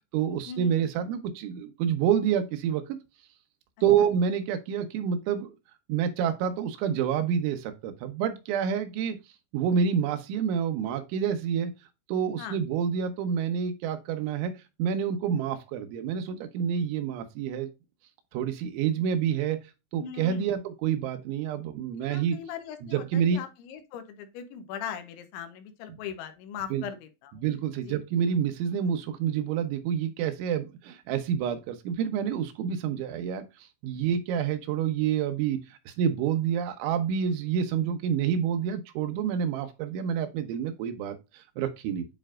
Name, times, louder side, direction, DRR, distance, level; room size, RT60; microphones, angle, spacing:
voice 1, 0.1-3.0 3.8-5.5 5.9-9.2 9.5-11.7 12.1-14.5 14.8-17.7 18.3-19.6 19.9-22.4 22.9-23.4 26.7-26.8 27.4-35.6 35.9-42.1, right 8 dB, 90° right, 3.4 m, -28 dB
voice 2, 20.0-20.5 22.0-27.3 27.9-28.0, left 8 dB, 90° left, 3.5 m, -39 dB
9.7 x 4.4 x 2.4 m
omnidirectional pair, 5.2 m